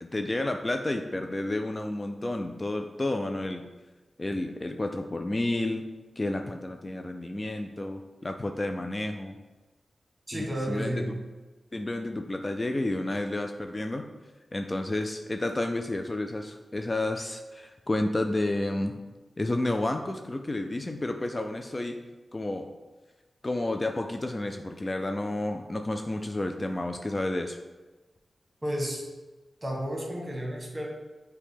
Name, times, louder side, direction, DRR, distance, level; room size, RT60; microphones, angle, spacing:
voice 1, 0.0-3.7 4.2-5.9 6.2-9.3 10.3-10.9 11.7-14.1 14.5-18.9 19.4-22.0 22.3-22.7 23.4-27.6, left 2 dB, 30° left, 5 dB, 0.3 m, -31 dB
voice 2, 10.3-11.2 28.6-29.0 29.6-30.9, equal, 30° right, -1 dB, 1.2 m, -32 dB
6.2 x 2.2 x 3.6 m, 1.2 s
cardioid pair, 55°, 0 cm